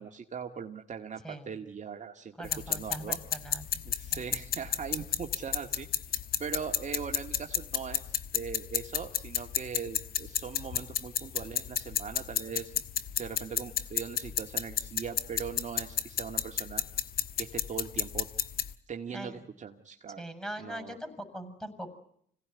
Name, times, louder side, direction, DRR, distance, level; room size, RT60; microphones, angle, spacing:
voice 1, 0.0-3.2 3.9-5.9 6.4-12.7 13.2-16.8 17.4-18.3 18.9-20.2 20.6-21.0, right 6 dB, 45° right, 3 dB, 1.9 m, -40 dB
sound 1, 2.4-18.7, left 9 dB, 60° left, 1.3 m, -33 dB
voice 2, 2.4-3.6 4.1-4.2 19.1-19.4 20.2-22.0, right 1 dB, 5° left, 11 dB, 7.0 m, -41 dB
26.5 x 17.5 x 9.5 m, 0.67 s
cardioid pair, 80°, 18 cm